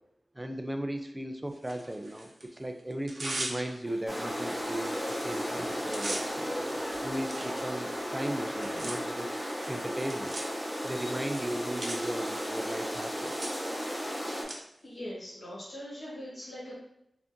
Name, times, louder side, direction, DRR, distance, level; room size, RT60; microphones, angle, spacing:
voice 1, 0.3-6.2 7.0-9.4 9.7-10.3 10.8-13.3, right 1 dB, 15° right, 5 dB, 0.4 m, -36 dB
Tearing, 1.6-2.5 2.9-4.0 4.5-4.6 4.9-5.2 5.5-14.6, right 1 dB, 55° right, 0.7 m, -41 dB
sound 1, 3.9-9.1, left 1 dB, 40° left, 0.8 m, -46 dB
sound 2, 4.1-14.4, equal, 5° left, 1.1 m, -35 dB
voice 2, 14.8-16.8, equal, 70° left, -7 dB, 1.4 m, -41 dB
5.0 x 2.5 x 2.6 m, 0.78 s
wide cardioid pair, 110°, 0 cm